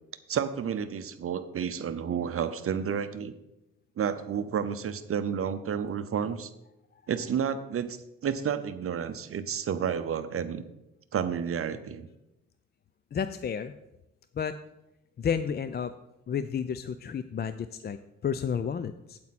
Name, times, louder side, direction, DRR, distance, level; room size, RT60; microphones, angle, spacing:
voice 1, 0.3-3.3 4.0-6.5 7.1-10.6 11.1-12.1, right 7 dB, 45° right, 11 dB, 0.7 m, -31 dB
voice 2, 13.1-13.7 14.3-14.6 15.2-15.9 16.3-19.2, left 7 dB, 35° left, 12 dB, 0.4 m, -31 dB
8.7 x 8.6 x 4.2 m, 0.89 s
cardioid pair, 90°, 30 cm